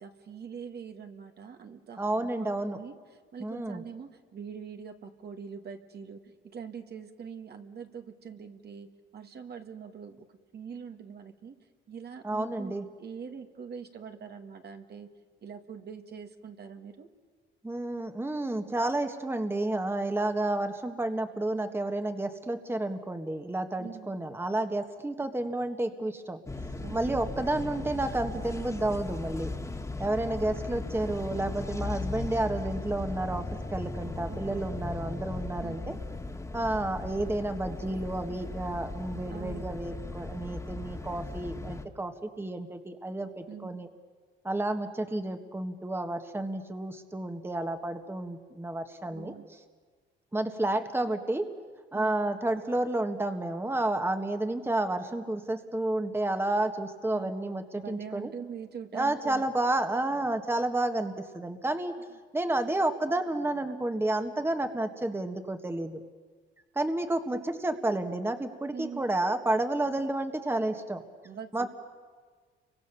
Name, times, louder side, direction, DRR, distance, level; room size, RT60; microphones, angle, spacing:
voice 1, 0.0-10.3 10.5-11.5 11.9-15.1 15.4-17.1 23.8-24.2 26.8-27.3 34.3-34.9 35.6-36.1 39.3-39.7 43.5-43.9 49.1-49.5 50.7-51.1 51.9-52.2 57.1-57.4 57.8-59.5 68.7-69.1 71.2-71.7, right 6 dB, 55° right, 5 dB, 2.1 m, -43 dB
voice 2, 2.0-2.8 3.4-3.8 12.2-12.9 17.6-26.4 26.9-29.5 30.0-36.0 36.5-43.9 44.4-49.3 50.3-51.5 51.9-58.3 58.9-61.9 62.3-66.0 66.8-71.0 71.5-71.7, right 2 dB, 10° right, 7 dB, 1.7 m, -31 dB
sound 1, 26.5-41.9, left 3 dB, 15° left, 2.0 m, -37 dB
30.0 x 24.5 x 6.9 m, 1.5 s
cardioid pair, 90°, 20 cm